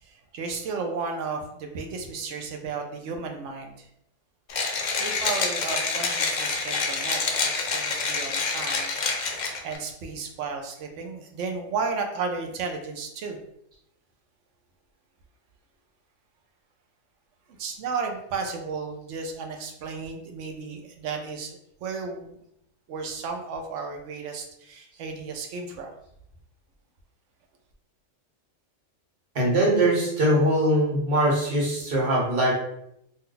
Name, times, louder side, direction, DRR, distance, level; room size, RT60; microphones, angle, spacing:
voice 1, 0.0-3.9 5.0-9.0 9.5-13.4 17.6-21.5 21.8-22.3 22.9-25.9, right 4 dB, 85° right, 4 dB, 0.9 m, -33 dB
Mechanisms, 4.5-9.8, left 4 dB, 60° left, 0.5 m, -27 dB
voice 2, 29.3-32.7, right 1 dB, 55° right, -3 dB, 1.1 m, -22 dB
2.6 x 2.1 x 3.7 m, 0.76 s
omnidirectional pair, 1.2 m